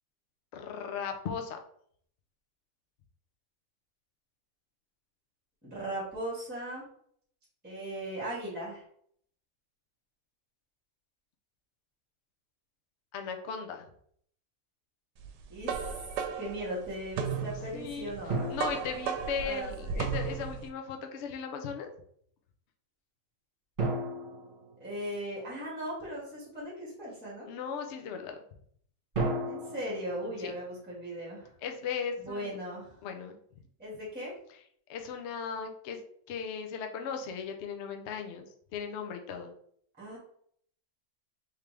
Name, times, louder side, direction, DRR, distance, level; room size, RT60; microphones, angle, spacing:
voice 1, 0.5-1.6 13.1-13.9 17.7-18.1 18.5-21.9 27.5-28.4 30.2-30.5 31.6-32.6 33.0-33.4 34.9-36.0 36.3-38.5 38.7-39.5, left 6 dB, 80° left, 5 dB, 0.6 m, -37 dB
voice 2, 5.6-6.8 7.6-8.8 15.5-16.0 16.4-18.7 19.4-20.0 24.8-27.5 29.4-31.5 32.2-33.0 33.8-34.3 40.0-40.2, right 1 dB, 5° right, -6 dB, 1.5 m, -38 dB
sound 1, 15.2-20.7, right 6 dB, 85° right, 1.2 m, -35 dB
sound 2, 18.3-19.9 23.8-25.7 29.1-31.4, right 2 dB, 35° right, 1.6 m, -36 dB
3.6 x 3.3 x 3.2 m, 0.64 s
omnidirectional pair, 1.8 m